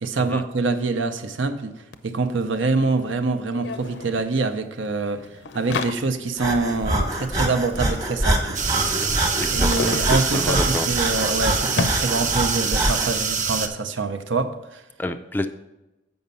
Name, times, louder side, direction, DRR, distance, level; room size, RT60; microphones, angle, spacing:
voice 1, 0.0-1.7 2.0-8.6 9.5-14.8, right 3 dB, 85° right, 0.7 m, -25 dB
sound 1, 1.9-2.0 2.2-12.7, left 4 dB, 70° left, 0.5 m, -34 dB
Breathing, 6.4-13.2, right 1 dB, 20° right, 1.0 m, -25 dB
sound 2, 8.5-13.7, right 6 dB, 40° right, 0.7 m, -25 dB
voice 2, 9.0-10.9 15.0-15.5, left 1 dB, 10° left, 0.3 m, -29 dB
7.9 x 5.4 x 5.4 m
head